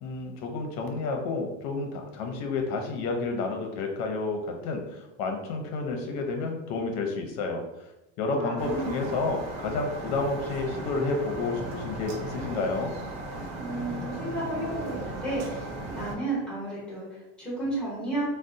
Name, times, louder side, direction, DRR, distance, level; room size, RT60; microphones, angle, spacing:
voice 1, 0.0-7.6 8.2-13.0, left 3 dB, 50° left, 3 dB, 0.6 m, -30 dB
voice 2, 8.4-9.1 13.6-18.2, right 2 dB, 5° left, -6 dB, 0.8 m, -33 dB
sound 1, 8.6-16.2, right 2 dB, 75° right, 0.7 m, -36 dB
3.9 x 2.0 x 2.6 m, 0.95 s
cardioid pair, 170°, 33 cm